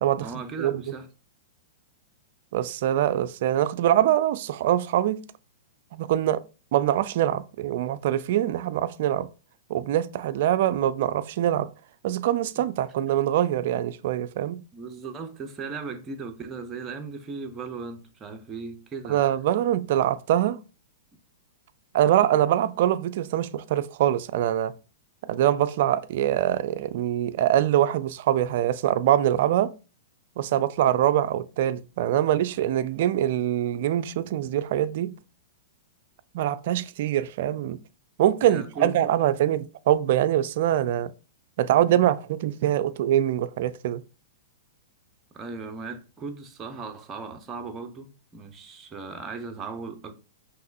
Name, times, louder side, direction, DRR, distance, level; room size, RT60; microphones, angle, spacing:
voice 1, 0.2-1.1 12.6-12.7 14.7-19.2 30.9-31.0 38.4-38.9 45.3-50.1, right 4 dB, 25° right, 0.8 m, -37 dB
voice 2, 2.5-5.2 5.9-6.4 6.7-9.3 9.7-11.7 12.0-14.6 19.1-20.6 21.9-24.7 25.2-29.7 30.4-35.1 36.3-37.8 38.2-41.1 41.6-44.0, right 12 dB, 60° right, 0.3 m, -24 dB
5.8 x 3.0 x 2.5 m
hypercardioid pair, 115°, 0 cm